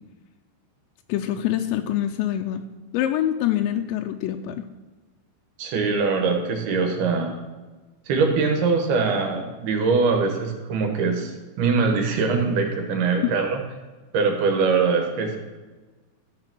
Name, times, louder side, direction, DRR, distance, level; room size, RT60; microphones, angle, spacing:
voice 1, 1.1-2.6 2.9-4.6, left 11 dB, 90° left, 5 dB, 2.9 m, -25 dB
voice 2, 5.6-7.4 8.1-13.6 14.1-15.4, right 4 dB, 70° right, 3 dB, 3.0 m, -22 dB
13.5 x 4.8 x 6.1 m, 1.3 s
omnidirectional pair, 5.1 m